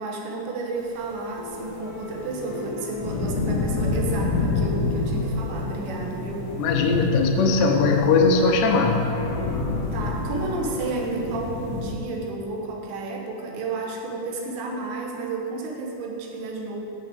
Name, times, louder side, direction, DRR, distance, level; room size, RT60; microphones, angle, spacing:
voice 1, 0.0-6.5 9.9-16.8, right 3 dB, 85° right, 0 dB, 3.4 m, -31 dB
sound 1, 1.4-11.9, left 3 dB, 55° left, 2.2 m, -29 dB
sound 2, 1.4-7.0 9.1-10.9, left 2 dB, 35° left, 1.6 m, -37 dB
voice 2, 6.6-9.1, left 4 dB, 85° left, 2 dB, 3.0 m, -20 dB
7.6 x 6.4 x 7.7 m, 2.9 s
omnidirectional pair, 5.0 m